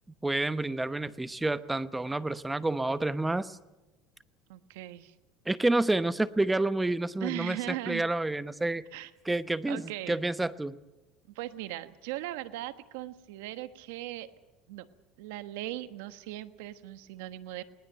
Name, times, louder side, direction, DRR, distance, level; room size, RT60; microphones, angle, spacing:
voice 1, 0.2-3.6 5.4-8.8 9.2-10.8, right 2 dB, 10° right, 15 dB, 0.9 m, -29 dB
voice 2, 4.5-5.1 7.2-8.0 8.9-9.1 9.7-10.2 11.3-14.3 14.7-14.9 15.2-17.6, right 16 dB, 90° right, 12 dB, 1.2 m, -38 dB
20.5 x 19.0 x 9.0 m, 1.1 s
supercardioid pair, 120°, 0 cm